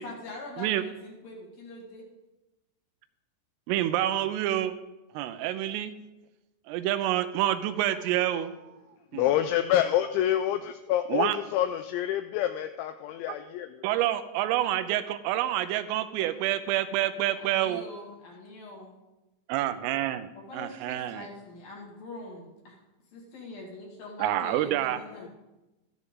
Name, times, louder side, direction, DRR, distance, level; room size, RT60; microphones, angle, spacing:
voice 1, 0.0-2.1 17.3-19.0 20.3-22.8 23.1-25.3, left 2 dB, 55° left, -2 dB, 3.3 m, -43 dB
voice 2, 3.7-4.8 5.1-5.9 6.7-8.5 9.1-9.3 11.1-11.4 13.3-13.4 13.8-17.9 19.5-21.3 24.2-25.0, right 13 dB, 85° right, 11 dB, 3.2 m, -28 dB
voice 3, 9.1-10.6 10.9-13.8 25.2-25.3, left 12 dB, 90° left, 9 dB, 2.6 m, -27 dB
13.5 x 13.5 x 3.7 m, 1.0 s
omnidirectional pair, 5.8 m